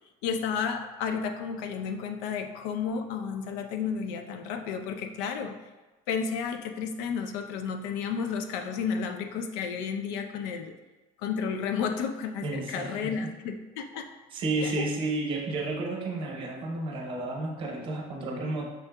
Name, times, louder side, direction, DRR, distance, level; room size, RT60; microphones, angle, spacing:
voice 1, 0.2-5.6 6.1-10.7 11.2-14.1 14.6-14.9, left 6 dB, 85° left, 6 dB, 0.5 m, -32 dB
voice 2, 12.4-13.0 13.2-13.3 14.3-18.6, right 2 dB, 35° right, -1 dB, 0.7 m, -31 dB
6.1 x 2.7 x 2.2 m, 1.2 s
cardioid pair, 170°, 16 cm